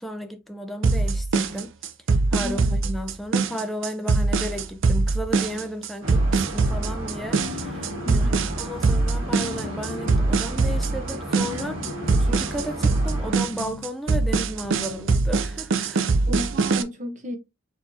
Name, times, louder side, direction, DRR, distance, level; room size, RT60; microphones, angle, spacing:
voice 1, 0.0-1.7 2.3-6.2 6.5-11.8 12.1-16.1, equal, ahead, 0.5 m, -34 dB
sound 1, 0.8-16.8, right 3 dB, 60° right, 0.5 m, -22 dB
voice 2, 2.4-2.8 8.0-8.5 16.3-17.4, left 1 dB, 35° right, 0.9 m, -33 dB
sound 2, 6.0-13.4, right 1 dB, 80° right, 2.3 m, -34 dB
sound 3, 7.4-8.5 9.4-10.5 11.4-12.5 13.3-13.9 14.6-15.2, left 5 dB, 60° left, 0.3 m, -38 dB
4.7 x 3.5 x 2.7 m
head